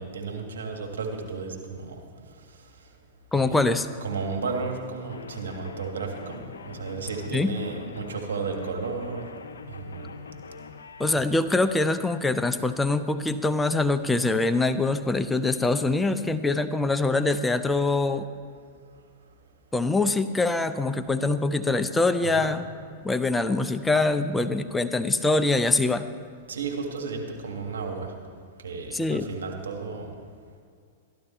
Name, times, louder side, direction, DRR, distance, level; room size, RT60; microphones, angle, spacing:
voice 1, 0.0-2.0 3.3-3.6 4.0-9.2 9.7-10.1 11.1-11.3 22.2-22.5 26.5-28.1 28.6-30.1, right 4 dB, 85° right, 2 dB, 1.9 m, -33 dB
voice 2, 3.3-3.9 7.3-7.5 11.0-18.3 19.7-22.6 23.0-26.1 28.9-29.3, left 2 dB, 10° left, 9 dB, 0.6 m, -24 dB
sound 1, 5.1-11.2, left 5 dB, 85° left, 0.7 m, -43 dB
14.0 x 12.0 x 4.4 m, 2.2 s
hypercardioid pair, 110°, 0 cm